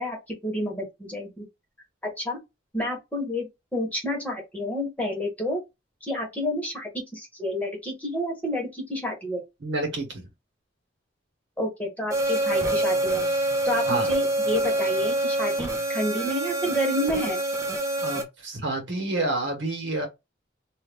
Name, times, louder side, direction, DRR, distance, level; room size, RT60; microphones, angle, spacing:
voice 1, 0.0-1.4 2.2-2.4 2.7-3.5 3.7-5.6 6.0-9.4 11.6-13.2 13.6-17.4, left 1 dB, 10° left, 1.3 m, -29 dB
voice 2, 9.6-10.3 13.9-14.1 18.0-20.1, right 2 dB, 70° right, 1.4 m, -28 dB
sound 1, 12.1-18.2, right 1 dB, 15° right, 0.7 m, -26 dB
2.7 x 2.5 x 3.5 m
head